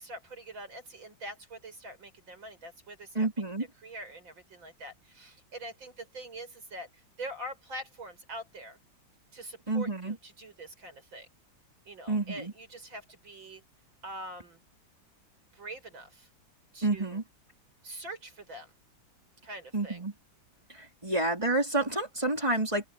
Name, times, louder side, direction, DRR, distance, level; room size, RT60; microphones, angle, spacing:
voice 1, 0.0-3.3 3.8-8.8 9.3-11.3 11.9-13.6 14.0-14.6 15.5-16.3 16.7-17.2 17.8-18.7 19.4-20.0 21.1-21.2, right 1 dB, 85° right, 7.5 m, -44 dB
voice 2, 3.1-3.7 9.7-10.2 12.1-12.5 16.8-17.2 19.7-20.1 20.7-22.9, right 2 dB, 15° right, 4.6 m, -29 dB
open air
omnidirectional pair, 2.1 m